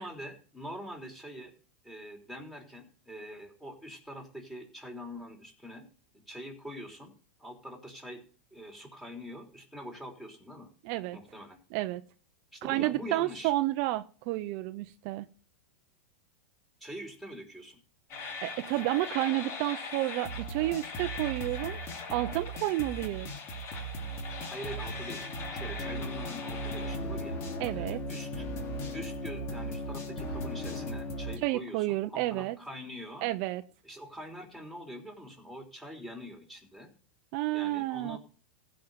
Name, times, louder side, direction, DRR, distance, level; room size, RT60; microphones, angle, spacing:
voice 1, 0.0-1.5 1.8-5.9 6.1-7.1 7.4-8.2 8.5-10.7 11.1-11.6 12.5-13.5 16.8-17.8 24.5-25.2 25.5-28.4 28.9-33.3 33.8-36.9 37.5-38.2, equal, 5° left, 3.4 m, -44 dB
voice 2, 10.8-11.2 11.7-12.0 12.6-15.2 18.4-21.8 22.1-23.3 27.6-28.0 31.4-32.6 33.2-33.6 37.3-38.2, right 17 dB, 50° right, 0.7 m, -31 dB
sound 1, 18.1-31.4, equal, 40° left, 3.0 m, -37 dB
15.5 x 5.2 x 8.0 m
supercardioid pair, 130°, 7 cm